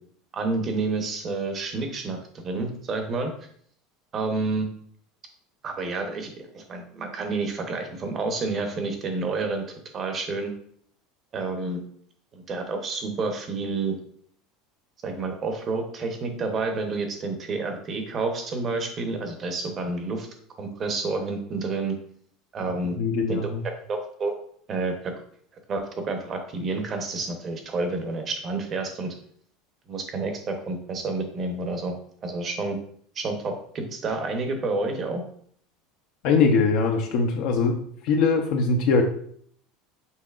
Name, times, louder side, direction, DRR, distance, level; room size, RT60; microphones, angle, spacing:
voice 1, 0.3-3.3 4.1-4.7 5.6-9.6 9.9-10.5 11.3-11.8 12.3-13.9 15.0-20.3 20.6-21.9 22.5-23.0 23.3-23.5 23.9-24.3 24.7-25.1 25.7-29.1 29.9-31.9 32.2-32.8 33.1-35.2, right 3 dB, 30° right, 5 dB, 0.8 m, -29 dB
voice 2, 23.0-23.6 36.2-37.8 38.0-39.0, left 4 dB, 60° left, 2 dB, 0.6 m, -21 dB
5.6 x 3.7 x 2.4 m, 0.62 s
supercardioid pair, 145°, 0 cm